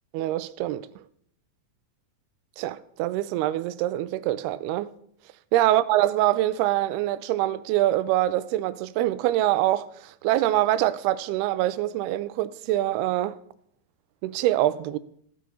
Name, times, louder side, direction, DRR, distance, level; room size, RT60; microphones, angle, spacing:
voice 1, 0.1-0.9 2.6-5.0 5.5-13.4 14.2-15.0, right 14 dB, 85° right, 2.6 m, -24 dB
15.5 x 8.6 x 4.4 m
omnidirectional pair, 4.5 m